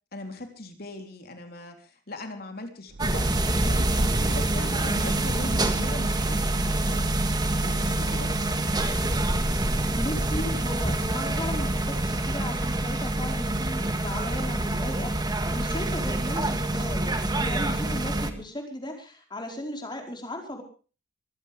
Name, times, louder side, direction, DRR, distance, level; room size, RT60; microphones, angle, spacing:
voice 1, 0.1-3.3 3.6-7.2 7.6-8.3, left 1 dB, 50° left, 5 dB, 3.5 m, -40 dB
sound 1, 2.9-8.9, right 2 dB, 55° right, 0.8 m, -34 dB
sound 2, 3.0-18.3, right 1 dB, 20° right, 1.7 m, -26 dB
voice 2, 10.0-20.6, left 1 dB, 25° left, 3 dB, 4.7 m, -36 dB
25.0 x 15.5 x 3.5 m, 0.36 s
head